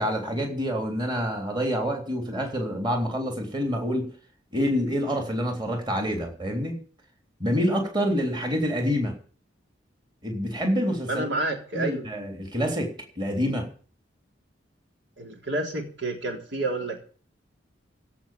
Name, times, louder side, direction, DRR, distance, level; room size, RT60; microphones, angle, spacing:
voice 1, 0.0-4.1 4.5-6.8 7.4-9.2 10.2-11.2 11.7-13.7, equal, 25° right, 3.4 m, -27 dB
voice 2, 11.1-12.0 15.2-17.0, right 2 dB, 80° right, 3.8 m, -29 dB
16.5 x 5.8 x 9.2 m
head